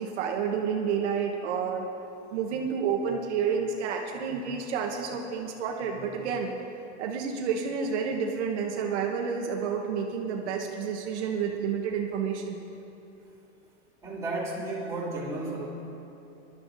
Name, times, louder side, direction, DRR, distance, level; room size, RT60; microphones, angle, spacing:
voice 1, 0.0-1.9 2.3-6.5 7.0-12.6, right 6 dB, 70° right, 1 dB, 1.2 m, -30 dB
voice 2, 14.0-15.7, right 2 dB, 10° right, -8 dB, 2.6 m, -33 dB
20.0 x 12.0 x 2.6 m, 2.9 s
supercardioid pair, 155°, 36 cm